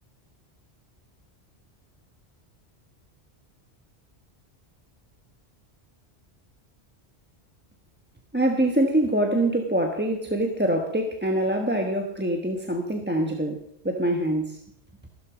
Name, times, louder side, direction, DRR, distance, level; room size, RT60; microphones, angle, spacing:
voice 1, 8.3-14.6, right 1 dB, 10° right, 3 dB, 1.2 m, -24 dB
15.0 x 12.5 x 5.0 m, 0.70 s
omnidirectional pair, 1.1 m